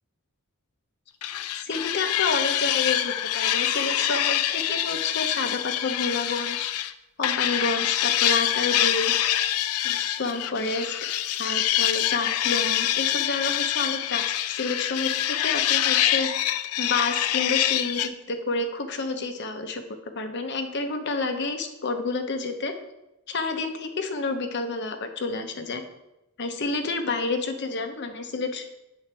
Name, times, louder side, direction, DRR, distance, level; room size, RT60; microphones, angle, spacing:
sound 1, 1.2-6.9 7.2-18.1, left 12 dB, 80° left, 0.4 m, -25 dB
voice 1, 1.5-6.7 7.2-9.3 9.8-10.9 11.4-16.3 16.8-19.8 20.1-22.7 23.3-25.8 26.4-28.7, left 3 dB, 50° left, 7 dB, 0.7 m, -29 dB
8.4 x 3.9 x 4.5 m, 0.93 s
head